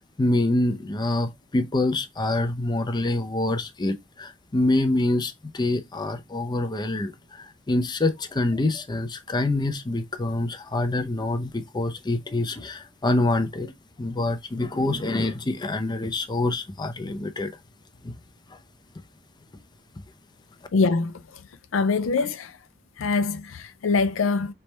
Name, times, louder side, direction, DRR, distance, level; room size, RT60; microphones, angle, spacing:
voice 1, 0.2-13.7 14.0-17.5 18.0-18.2 18.5-18.6, left 2 dB, 20° left, 0.5 m, -26 dB
voice 2, 20.7-21.4 21.7-22.6 23.0-24.5, left 4 dB, 75° left, 0.5 m, -24 dB
4.0 x 3.4 x 3.2 m
head